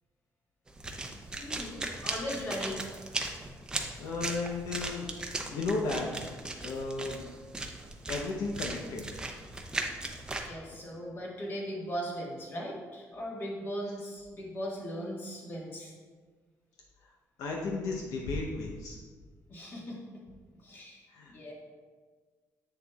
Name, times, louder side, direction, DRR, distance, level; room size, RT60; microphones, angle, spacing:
sound 1, 0.7-10.5, right 2 dB, 15° right, 0.6 m, -38 dB
voice 1, 1.1-2.8 10.4-15.9 19.5-20.2 20.6-21.0 21.3-21.5, equal, 40° left, -3 dB, 1.6 m, -38 dB
voice 2, 4.0-5.1 5.5-6.2 6.6-7.2 8.1-9.0 17.4-19.0 21.1-21.3, left 3 dB, 80° left, -1 dB, 0.8 m, -34 dB
7.9 x 6.6 x 2.4 m, 1.5 s
cardioid pair, 145°, 6 cm